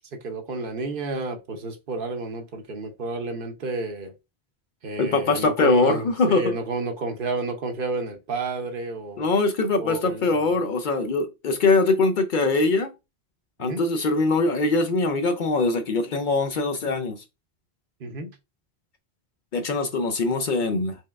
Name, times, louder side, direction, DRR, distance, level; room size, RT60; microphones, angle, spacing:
voice 1, 0.1-4.1 4.8-9.3 9.8-10.6 13.6-13.8 18.0-18.3, right 3 dB, 60° right, 0.9 m, -31 dB
voice 2, 5.0-6.6 9.2-12.9 13.6-17.2 19.5-21.0, left 3 dB, 60° left, 0.6 m, -22 dB
4.4 x 3.2 x 2.3 m
omnidirectional pair, 1.1 m